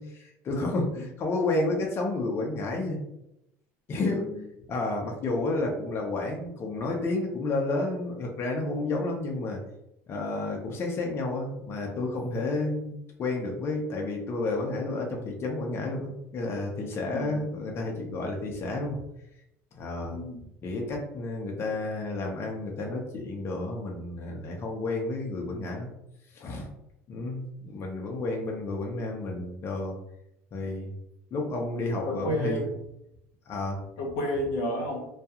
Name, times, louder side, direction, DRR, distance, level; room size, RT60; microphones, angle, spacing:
voice 1, 0.0-3.0 3.9-4.3 4.7-9.6 10.1-19.0 19.7-20.2 20.6-25.9 26.3-26.7 27.1-30.0 30.5-30.9 31.3-32.6 33.5-33.8, left 2 dB, 35° left, 0 dB, 0.6 m, -31 dB
voice 2, 4.1-4.4 17.1-17.4 20.1-20.4 32.0-32.7 34.0-35.1, equal, 80° left, 1 dB, 0.7 m, -31 dB
2.3 x 2.3 x 2.8 m, 0.83 s
supercardioid pair, 105°, 7 cm